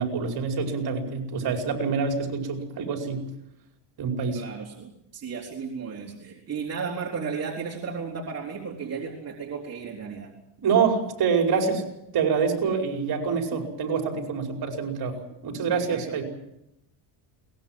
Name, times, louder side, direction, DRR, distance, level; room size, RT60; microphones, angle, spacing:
voice 1, 0.0-3.2 4.0-4.4 10.6-11.8 12.1-15.2 15.4-16.2, right 5 dB, 50° right, 3 dB, 5.3 m, -26 dB
voice 2, 4.3-10.3 15.7-16.2, right 5 dB, 30° right, -1 dB, 3.6 m, -34 dB
22.0 x 20.0 x 7.7 m, 0.81 s
cardioid pair, 115°, 49 cm